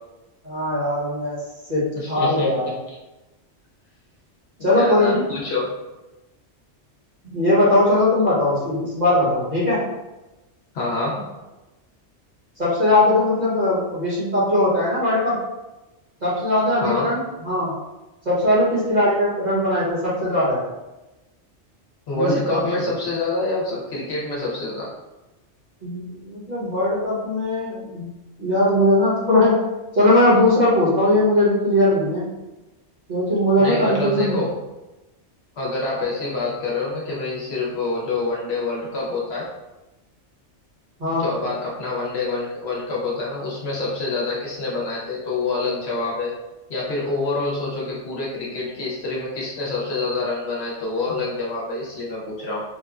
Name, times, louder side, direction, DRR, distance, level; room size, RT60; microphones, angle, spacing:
voice 1, 0.4-1.4 1.7-1.8 2.1-2.8 4.6-5.2 7.2-9.8 12.6-15.3 16.2-17.7 18.2-20.6 22.1-22.8 25.8-28.1 28.4-29.5 29.9-32.2 33.1-34.4 41.0-41.3, left 1 dB, 40° right, -9 dB, 1.1 m, -19 dB
voice 2, 1.9-2.5 2.9-3.0 4.7-5.7 10.7-11.2 16.8-17.1 22.1-24.9 33.6-34.5 35.6-39.5 41.1-46.3 46.7-52.6, left 3 dB, 65° left, -4 dB, 0.9 m, -26 dB
3.1 x 2.2 x 2.3 m, 1.0 s
omnidirectional pair, 1.2 m